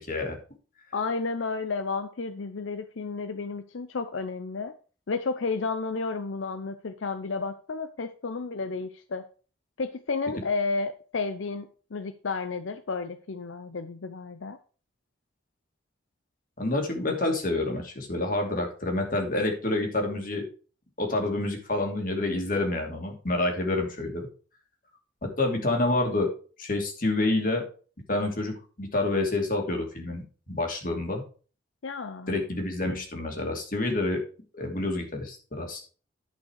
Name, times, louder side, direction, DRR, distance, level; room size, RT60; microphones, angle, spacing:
voice 1, 0.9-4.7 5.1-9.2 9.8-14.6 31.8-32.3, left 4 dB, 85° left, 10 dB, 0.7 m, -32 dB
voice 2, 16.6-20.4 21.0-24.3 25.2-26.3 26.6-27.6 28.1-31.2 32.3-34.2 34.5-35.8, left 2 dB, 45° left, 2 dB, 2.6 m, -28 dB
10.5 x 5.7 x 4.6 m, 0.37 s
head